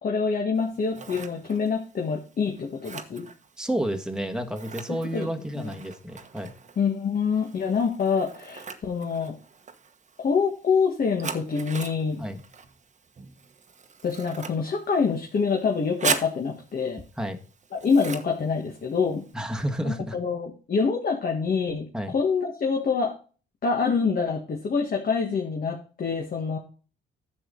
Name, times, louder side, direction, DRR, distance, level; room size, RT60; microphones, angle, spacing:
voice 1, 0.0-3.3 4.9-5.3 5.5-5.7 6.8-9.4 10.2-12.2 14.0-17.0 17.7-19.3 20.1-23.1 23.6-26.6, left 5 dB, 45° left, 1 dB, 1.7 m, -26 dB
Scissors, 0.6-19.3, right 5 dB, 35° right, 1.2 m, -39 dB
voice 2, 3.6-6.5 12.2-12.4 17.2-17.4 19.3-20.1 21.9-22.1, right 1 dB, 5° right, 5 dB, 1.5 m, -30 dB
10.5 x 6.9 x 3.9 m, 0.38 s
cardioid pair, 90°, 20 cm